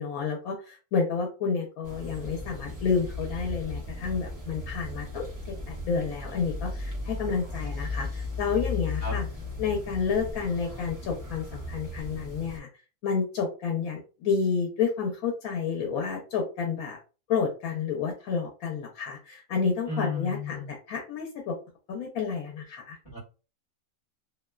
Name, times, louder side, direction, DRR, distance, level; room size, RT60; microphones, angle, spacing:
voice 1, 0.0-9.2 9.6-12.7 13.0-17.0 17.3-21.5 21.9-23.0, left 5 dB, 90° left, 1 dB, 1.1 m, -30 dB
sound 1, 1.8-12.6, left 2 dB, 20° right, 0.6 m, -36 dB
voice 2, 19.9-20.7 23.0-23.2, left 4 dB, 30° left, -5 dB, 1.0 m, -33 dB
2.6 x 2.1 x 2.2 m, 0.33 s
omnidirectional pair, 1.5 m